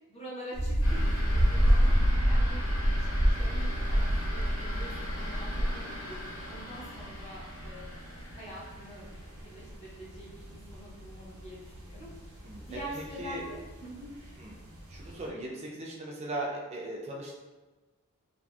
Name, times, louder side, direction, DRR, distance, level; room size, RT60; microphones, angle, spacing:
voice 1, 0.1-1.9 2.2-2.6 2.9-6.2 6.5-8.0 8.3-12.1 12.6-14.1, right 1 dB, 25° left, -8 dB, 0.7 m, -45 dB
sound 1, 0.5-15.3, equal, 80° right, 0.6 m, -30 dB
sound 2, 0.8-9.9, equal, 80° left, 0.9 m, -42 dB
voice 2, 12.9-13.4 14.4-14.5 14.9-17.3, right 1 dB, 30° right, -2 dB, 0.4 m, -38 dB
2.5 x 2.5 x 2.3 m, 1.2 s
head